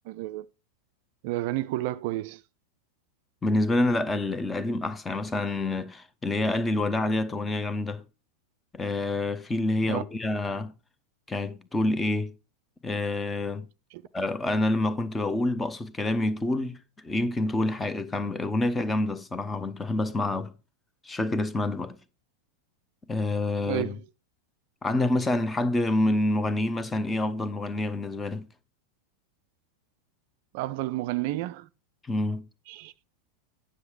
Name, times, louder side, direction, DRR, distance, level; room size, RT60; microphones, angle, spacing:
voice 1, 0.1-0.5 1.2-2.4 9.9-10.0 13.9-14.0 23.7-24.0 30.5-31.7 32.7-32.9, right 16 dB, 50° right, 0.4 m, -31 dB
voice 2, 3.4-8.0 8.7-10.7 11.3-12.3 12.8-13.7 14.1-16.8 17.0-20.5 21.0-22.0 23.1-24.0 24.8-28.5 32.1-32.4, left 2 dB, 10° left, 0.9 m, -27 dB
9.7 x 6.3 x 4.6 m
figure-of-eight pair, 90°, 0 cm